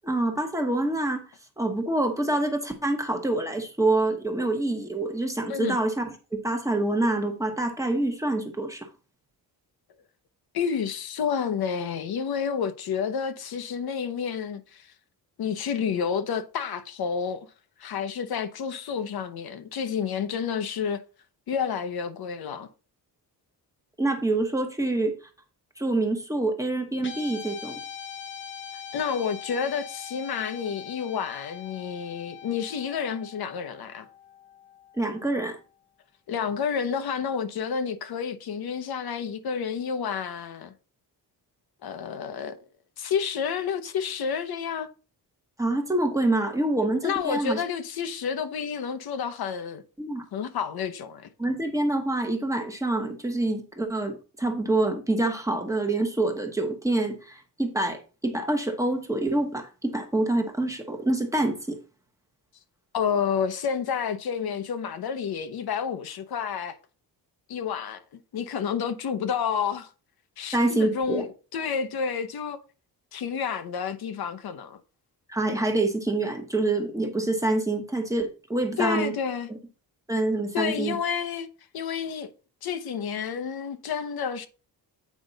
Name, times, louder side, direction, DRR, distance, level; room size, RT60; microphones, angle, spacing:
voice 1, 0.0-1.2 1.6-6.0 6.4-8.9 24.0-25.1 25.8-27.8 35.0-35.6 45.6-47.6 50.0-50.2 51.4-61.8 70.5-71.2 75.3-79.1 80.1-80.9, right 2 dB, 10° right, 1.0 m, -26 dB
voice 2, 10.5-14.9 15.4-17.5 17.8-21.0 21.5-22.7 28.9-34.1 36.3-40.7 41.8-42.6 43.0-44.9 47.0-49.8 50.3-51.3 62.9-66.8 67.5-69.9 70.4-72.6 73.1-74.8 78.8-79.5 80.5-81.5 81.7-82.3 82.6-84.5, left 7 dB, 65° left, 1.0 m, -30 dB
Guitar, 27.0-35.5, left 8 dB, 30° left, 0.8 m, -42 dB
8.6 x 5.1 x 4.0 m
wide cardioid pair, 180°, 40 cm